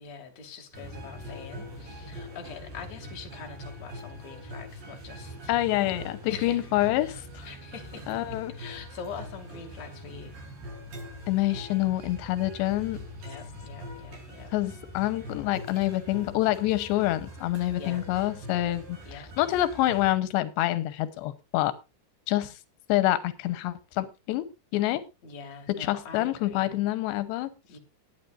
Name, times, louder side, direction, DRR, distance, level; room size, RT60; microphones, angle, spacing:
voice 1, 0.0-6.0 6.3-6.7 7.4-8.2 8.5-10.4 13.2-14.5 17.8-18.0 19.0-19.3 25.2-26.7 27.7-27.8, left 6 dB, 45° left, 3.3 m, -44 dB
sound 1, 0.7-20.1, equal, 55° right, 6.8 m, -43 dB
voice 2, 5.5-7.5 8.1-8.5 11.3-13.0 14.5-21.7 22.3-22.5 22.9-25.0 25.7-27.5, left 15 dB, 90° left, 3.1 m, -27 dB
21.0 x 9.1 x 2.5 m
omnidirectional pair, 4.9 m